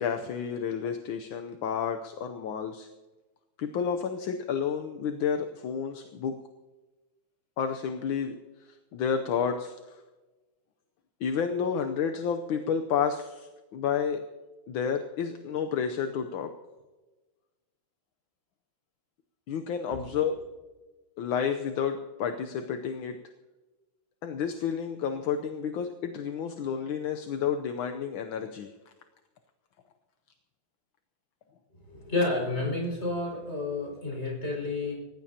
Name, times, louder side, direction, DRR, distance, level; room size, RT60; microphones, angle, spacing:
voice 1, 0.0-2.9 3.6-6.4 7.6-8.4 8.9-10.0 11.2-14.2 14.7-16.5 19.5-20.3 21.2-23.2 24.2-28.7, left 7 dB, 75° left, 5 dB, 1.6 m, -30 dB
voice 2, 31.9-34.9, left 2 dB, 30° left, -3 dB, 6.0 m, -30 dB
25.0 x 15.0 x 2.9 m, 1.2 s
omnidirectional pair, 2.3 m